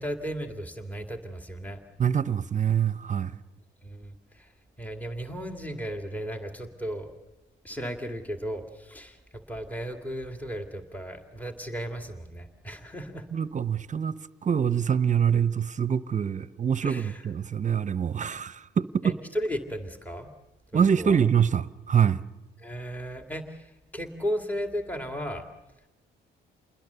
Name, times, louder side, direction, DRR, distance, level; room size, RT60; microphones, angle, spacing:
voice 1, 0.0-1.8 3.8-4.5 4.8-7.1 7.6-9.2 9.5-13.2 16.8-17.2 19.0-20.3 20.7-21.2 22.6-25.4, equal, 10° left, 2.2 m, -35 dB
voice 2, 2.0-3.4 13.3-19.1 20.7-22.2, right 8 dB, 40° right, 0.8 m, -25 dB
28.5 x 21.0 x 6.9 m
cardioid pair, 75°, 20 cm